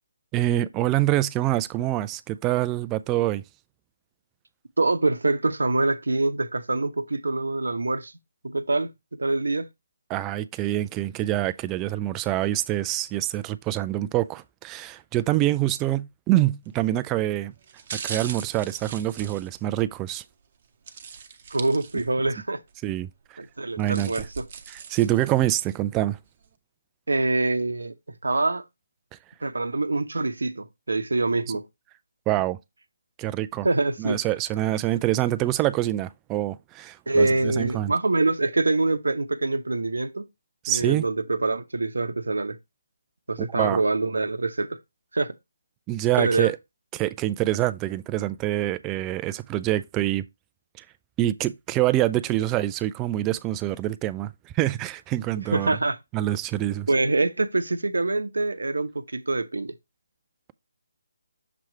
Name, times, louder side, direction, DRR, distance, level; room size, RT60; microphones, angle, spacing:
voice 1, 0.3-3.4 10.1-17.5 18.0-20.2 22.8-23.4 23.8-24.2 24.7-26.2 32.3-32.6 33.2-33.7 34.0-37.9 40.6-41.0 43.4-43.8 45.9-46.6 46.9-50.3 51.2-55.8 56.1-56.9, right 14 dB, 15° right, 0.3 m, -25 dB
voice 2, 4.8-8.1 8.4-8.9 9.2-9.7 21.5-22.6 23.4-24.4 27.1-27.9 28.2-28.6 29.4-31.7 33.6-34.2 37.1-40.2 40.7-42.6 43.3-44.8 45.1-45.3 46.2-46.5 55.5-56.0 56.9-59.7, right 2 dB, 70° right, 0.7 m, -25 dB
sound 1, 16.7-16.9 17.6-20.2 20.9-22.3 22.7-22.8 23.6-25.8 26.2-26.3, right 6 dB, 35° right, 0.8 m, -40 dB
6.8 x 3.1 x 4.5 m
figure-of-eight pair, 150°, 0 cm